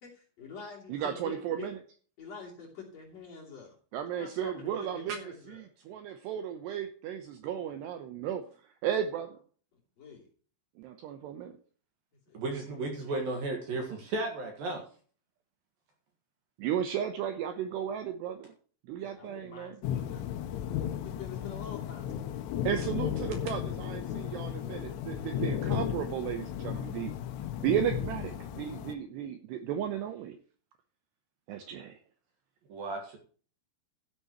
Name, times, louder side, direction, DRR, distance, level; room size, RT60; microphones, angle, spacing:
voice 1, 0.0-1.7 2.2-3.8 4.2-5.6 10.0-10.3 12.3-12.4 12.7-12.9 19.0-20.2 21.0-22.4, left 6 dB, 40° left, -2 dB, 3.6 m, -46 dB
voice 2, 0.9-1.8 3.9-5.2 5.5-8.4 8.8-9.3 10.8-11.5 16.6-18.5 18.9-19.8 22.6-27.1 27.6-30.4 31.5-32.0, right 9 dB, 75° right, 7 dB, 2.6 m, -34 dB
voice 3, 12.3-14.8 32.7-33.2, right 2 dB, 60° right, 3 dB, 2.9 m, -34 dB
sound 1, 19.8-28.9, left 10 dB, 80° left, 3.4 m, -35 dB
13.0 x 10.5 x 3.0 m, 0.42 s
omnidirectional pair, 5.7 m